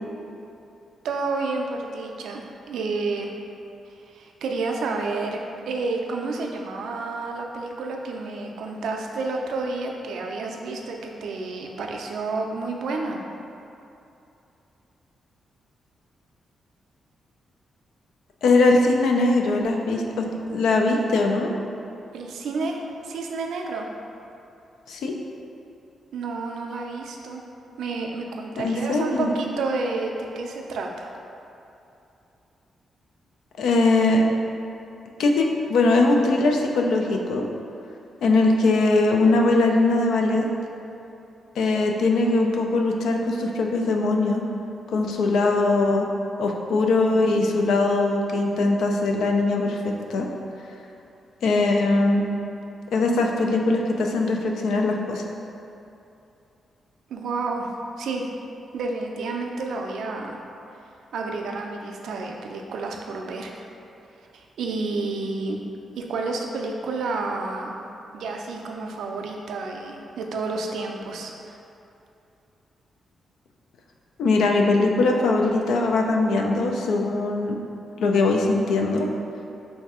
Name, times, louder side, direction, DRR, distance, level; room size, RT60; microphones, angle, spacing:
voice 1, 1.0-3.3 4.1-13.2 22.1-23.9 26.1-27.4 27.8-31.1 57.1-57.7 58.0-58.3 58.7-60.4 61.1-63.7 64.3-65.6 66.0-67.8 68.1-71.6, right 3 dB, 85° right, 1 dB, 0.3 m, -30 dB
voice 2, 18.4-21.5 24.9-25.2 28.6-29.4 33.6-34.2 35.2-37.5 38.2-40.5 41.5-44.5 44.9-46.1 46.4-50.3 50.6-50.8 51.4-52.3 52.9-55.2 74.2-77.6 78.0-79.1, left 2 dB, 85° left, 2 dB, 0.3 m, -21 dB
3.2 x 2.6 x 3.5 m, 2.7 s
cardioid pair, 120°, 0 cm